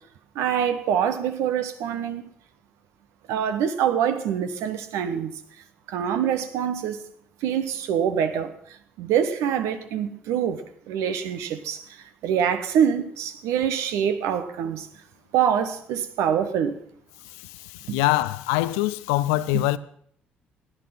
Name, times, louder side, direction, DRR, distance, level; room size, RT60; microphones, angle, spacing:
voice 1, 0.3-2.2 3.3-5.3 5.9-7.0 7.4-14.9 15.3-16.8 17.9-18.0 19.5-19.6, right 8 dB, 65° right, 1.1 m, -25 dB
voice 2, 17.4-19.8, left 17 dB, 70° left, 0.5 m, -24 dB
15.0 x 10.5 x 5.9 m
figure-of-eight pair, 45°, 5 cm